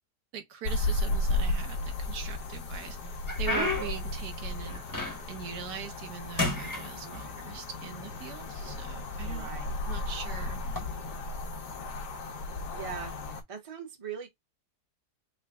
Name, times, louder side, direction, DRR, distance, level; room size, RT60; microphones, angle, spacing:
voice 1, 0.3-5.0 5.3-9.5 9.9-10.6, right 9 dB, 75° right, 1.2 m, -41 dB
sound 1, 0.6-13.4, left 2 dB, 90° left, 1.4 m, -34 dB
sound 2, 1.5-2.3 2.7-5.5 5.8-6.1 6.4-7.6 8.4-8.5 9.2-9.4 10.6-10.8, left 2 dB, 15° left, 0.7 m, -33 dB
voice 2, 7.0-7.3 9.2-9.7 12.7-14.3, right 8 dB, 25° right, 0.8 m, -42 dB
3.9 x 2.2 x 3.3 m
omnidirectional pair, 1.7 m